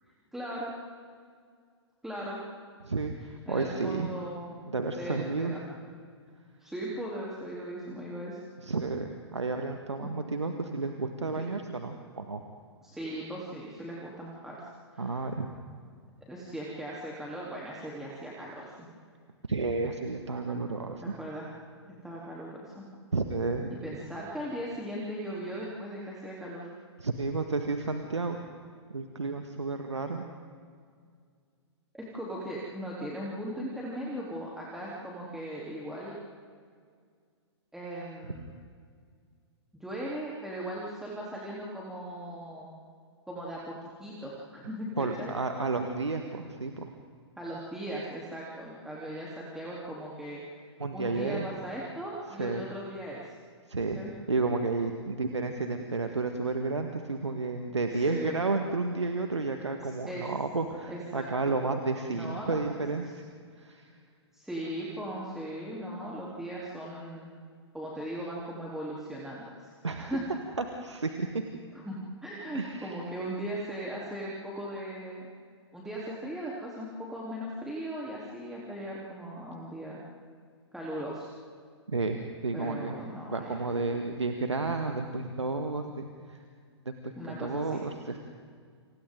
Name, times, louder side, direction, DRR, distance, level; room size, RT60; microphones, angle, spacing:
voice 1, 0.3-0.7 2.0-2.4 3.5-4.5 5.0-5.6 6.6-8.4 10.0-10.1 11.3-11.5 12.8-14.6 14.9-15.2 16.3-18.9 21.0-21.5 22.0-22.8 23.8-26.7 31.9-36.2 37.7-38.5 39.7-42.7 43.3-45.3 47.4-50.4 50.9-53.3 54.0-54.1 57.9-58.4 60.1-60.2 60.9-61.5 62.1-62.7 63.1-63.2 64.3-67.3 67.7-69.7 70.0-70.3 71.7-75.3 75.7-80.0 80.7-81.3 82.5-83.6 87.2-87.8, right 1 dB, 5° right, -6 dB, 3.5 m, -38 dB
voice 2, 2.8-4.1 4.7-5.6 8.6-12.4 15.0-15.5 19.5-21.0 23.1-23.7 27.0-28.5 28.9-30.2 45.0-46.9 50.8-51.5 52.4-52.6 53.7-54.0 54.3-63.2 63.6-63.9 69.8-70.2 70.6-71.3 72.5-73.0 81.9-83.0 83.3-86.4 86.8-88.2, right 3 dB, 80° right, 5 dB, 1.7 m, -31 dB
30.0 x 28.5 x 3.9 m, 2.1 s
figure-of-eight pair, 110°, 15 cm